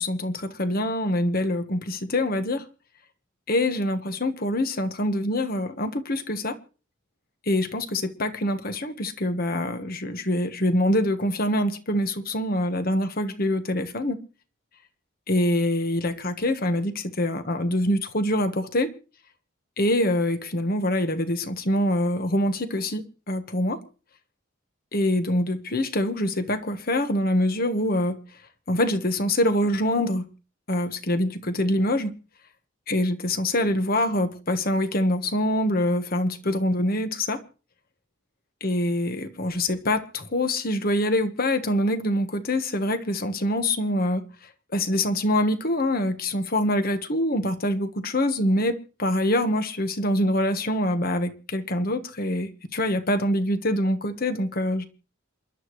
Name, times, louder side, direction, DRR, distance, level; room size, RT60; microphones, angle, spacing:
voice 1, 0.0-2.7 3.5-6.6 7.5-14.2 15.3-18.9 19.8-23.8 24.9-28.2 28.7-30.2 30.7-32.1 32.9-37.4 38.6-44.2 44.7-54.9, left 1 dB, 45° left, 1.3 m, -25 dB
28.0 x 11.5 x 3.2 m
head